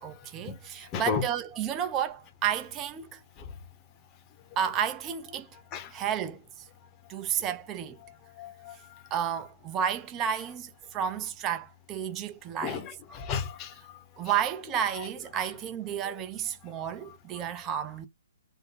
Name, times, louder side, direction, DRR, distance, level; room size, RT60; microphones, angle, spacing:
voice 1, 0.0-3.2 4.6-5.5 5.9-6.4 7.1-8.0 9.1-12.9 14.2-18.1, right 9 dB, 20° right, 0.7 m, -31 dB
voice 2, 0.9-1.2 5.7-5.9 8.4-8.7 12.6-13.7, left 6 dB, 20° left, 0.9 m, -32 dB
4.2 x 2.2 x 3.9 m
hypercardioid pair, 160°, 0 cm